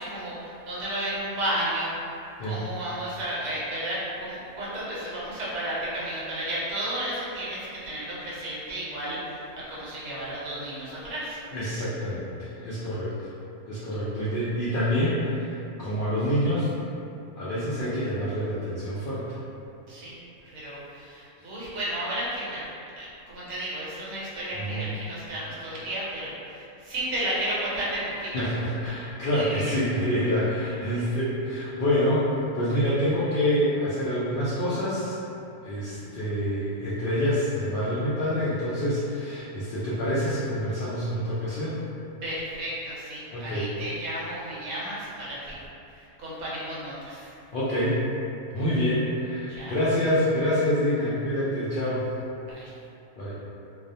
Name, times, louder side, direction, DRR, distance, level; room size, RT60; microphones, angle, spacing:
voice 1, 0.0-1.9 2.4-11.4 19.9-20.2 20.4-22.6 23.0-28.3 28.9-29.0 29.3-29.6 30.9-31.1 36.0-36.4 42.2-45.6 45.9-47.3 48.5-48.6 49.5-49.8 52.5-52.7, right 1 dB, 65° right, -8 dB, 0.9 m, -33 dB
voice 2, 11.5-13.1 13.7-16.7 17.4-19.3 24.6-24.8 28.3-35.2 35.6-41.8 43.3-43.7 47.5-48.0 48.5-52.1 53.2-53.4, equal, 80° left, -10 dB, 0.4 m, -27 dB
2.4 x 2.0 x 2.6 m, 2.7 s
omnidirectional pair, 1.4 m